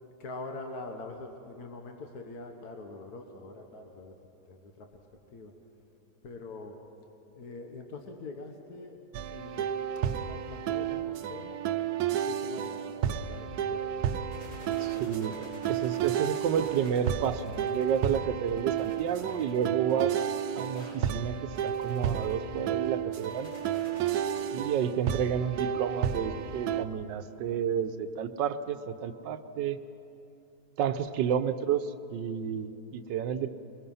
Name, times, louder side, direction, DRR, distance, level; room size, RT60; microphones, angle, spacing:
voice 1, 0.2-4.2 4.5-5.0 5.3-5.5 6.2-6.8 7.3-9.0 9.3-9.7 9.9-11.6 12.1-14.2 14.7-15.1, left 3 dB, 65° left, 3 dB, 1.7 m, -44 dB
sound 1, 9.1-26.8, right 9 dB, 70° right, 1.1 m, -32 dB
sound 2, 14.3-24.5, equal, 35° left, 3.1 m, -51 dB
voice 2, 14.8-20.2 20.6-23.5 24.5-29.8 30.8-33.5, right 8 dB, 85° right, 11 dB, 1.4 m, -31 dB
23.5 x 20.5 x 5.6 m, 2.8 s
omnidirectional pair, 1.9 m